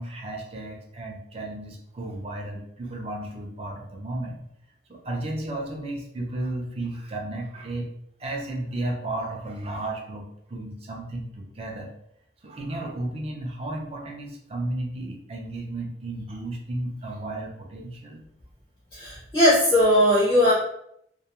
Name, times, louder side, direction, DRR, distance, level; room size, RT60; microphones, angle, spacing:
voice 1, 0.0-4.4 4.9-7.9 8.2-11.9 12.4-18.2, right 1 dB, 35° right, 1 dB, 0.4 m, -33 dB
voice 2, 18.9-20.5, left 1 dB, 20° left, -6 dB, 0.5 m, -19 dB
2.2 x 2.2 x 2.9 m, 0.74 s
head